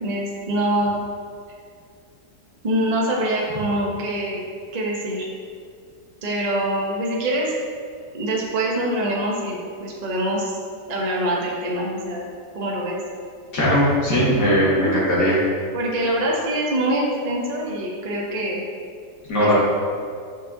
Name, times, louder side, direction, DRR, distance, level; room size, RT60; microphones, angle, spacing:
voice 1, 0.0-1.0 2.6-4.4 4.7-5.3 6.2-7.5 8.1-10.5 10.9-12.3 12.5-13.0 14.7-14.9 15.7-18.6 19.4-19.5, right 1 dB, 40° right, -3 dB, 0.6 m, -24 dB
voice 2, 13.5-15.4 19.3-19.5, equal, 60° left, -8 dB, 2.2 m, -19 dB
7.0 x 6.2 x 2.7 m, 2.2 s
omnidirectional pair, 2.1 m